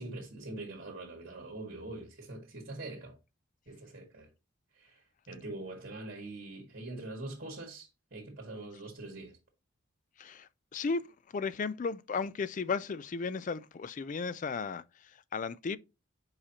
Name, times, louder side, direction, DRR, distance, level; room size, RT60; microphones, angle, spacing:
voice 1, 0.0-3.1 3.6-4.3 4.7-9.4, right 2 dB, 50° right, 1.8 m, -43 dB
voice 2, 10.2-11.1 11.3-15.8, left 5 dB, 40° left, 0.3 m, -35 dB
7.2 x 4.9 x 2.9 m
head